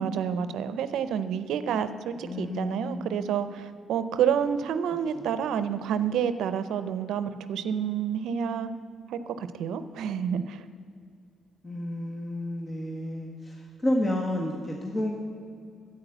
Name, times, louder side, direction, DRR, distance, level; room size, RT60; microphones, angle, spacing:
voice 1, 0.0-8.7 9.1-10.6, right 8 dB, 80° right, 12 dB, 0.5 m, -29 dB
voice 2, 2.2-3.1 5.1-5.3 11.6-15.1, left 1 dB, 35° left, 0 dB, 1.5 m, -31 dB
10.0 x 8.6 x 7.9 m, 2.3 s
supercardioid pair, 65°, 0 cm